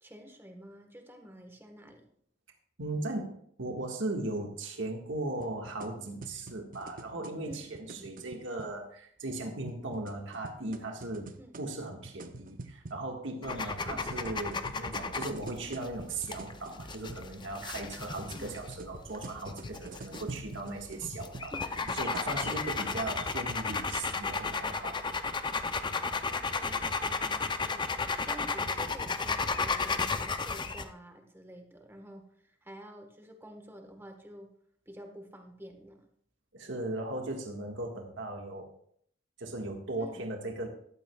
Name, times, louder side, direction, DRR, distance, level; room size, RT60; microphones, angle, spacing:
voice 1, 0.0-2.1 7.4-8.1 11.4-11.6 13.9-14.1 18.4-18.6 20.2-20.4 21.5-22.0 26.0-27.9 28.2-34.5 34.9-36.1 40.0-40.2, right 1 dB, 10° right, 4 dB, 1.4 m, -49 dB
voice 2, 2.8-11.3 11.6-21.5 21.9-25.1 36.5-38.7 39.4-40.7, right 2 dB, 70° right, 1 dB, 1.7 m, -38 dB
sound 1, 5.4-8.7 9.7-13.0 13.9-17.3 18.2-23.6, right 2 dB, 45° right, 0.7 m, -47 dB
sound 2, 13.4-30.9, left 4 dB, 25° left, 0.5 m, -34 dB
15.0 x 11.5 x 2.4 m, 0.64 s
head